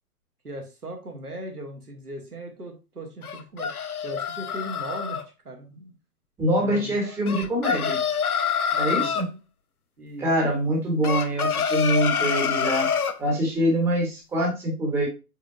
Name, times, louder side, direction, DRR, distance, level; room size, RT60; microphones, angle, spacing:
voice 1, 0.4-3.7 4.0-5.9 6.6-7.2 8.7-9.1 10.0-10.3, right 1 dB, 85° right, 2 dB, 1.5 m, -38 dB
sound 1, 3.2-5.2 7.3-9.3 11.0-13.2, left 7 dB, 80° left, 0.6 m, -26 dB
voice 2, 6.4-8.0 8.8-9.3 10.2-12.9 13.2-15.1, right 1 dB, 5° right, -2 dB, 0.9 m, -24 dB
4.8 x 3.8 x 2.5 m, 0.28 s
figure-of-eight pair, 120°, 44 cm